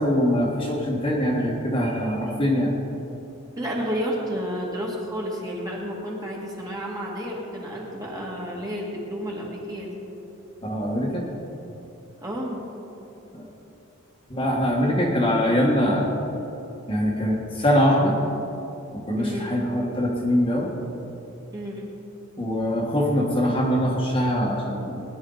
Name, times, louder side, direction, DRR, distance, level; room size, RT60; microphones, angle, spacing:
voice 1, 0.0-2.7 10.6-11.3 13.3-13.5 14.3-16.1 16.9-18.2 19.1-20.7 22.4-25.0, equal, 25° left, -3 dB, 1.5 m, -23 dB
voice 2, 3.6-10.0 12.2-12.6 19.2-19.5 21.5-21.9, equal, 15° right, -3 dB, 2.0 m, -31 dB
19.5 x 11.0 x 4.0 m, 3.0 s
head